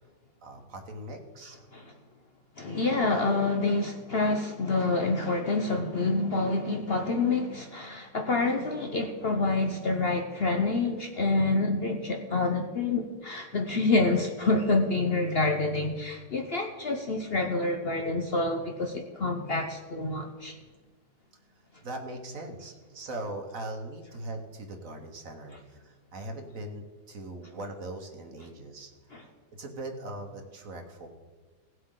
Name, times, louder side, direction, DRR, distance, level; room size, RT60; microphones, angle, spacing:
voice 1, 0.4-1.6 21.8-29.3 29.6-31.1, right 1 dB, 50° right, 4 dB, 1.3 m, -40 dB
voice 2, 2.6-20.6 29.1-29.2, left 3 dB, 65° left, 4 dB, 0.6 m, -27 dB
18.0 x 8.0 x 3.8 m, 1.4 s
omnidirectional pair, 2.1 m